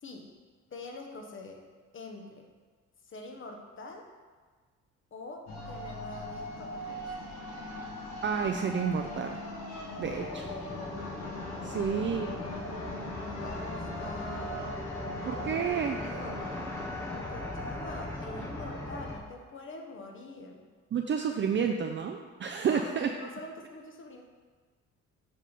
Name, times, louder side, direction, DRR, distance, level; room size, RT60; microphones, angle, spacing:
voice 1, 0.0-0.4 0.7-1.6 1.9-2.5 3.1-4.1 5.1-7.0 9.9-11.1 11.7-14.9 15.2-16.5 17.1-20.7 22.6-24.2, left 2 dB, 40° left, 2 dB, 1.1 m, -45 dB
sound 1, 5.5-19.2, left 1 dB, 65° left, 1.4 m, -40 dB
voice 2, 8.2-9.4 10.0-10.4 11.6-12.3 15.3-16.0 20.9-23.1, right 7 dB, 40° right, 3 dB, 0.5 m, -30 dB
sound 2, 10.0-19.2, left 1 dB, 10° left, 0.6 m, -40 dB
7.5 x 3.6 x 5.5 m, 1.4 s
cardioid pair, 90°, 30 cm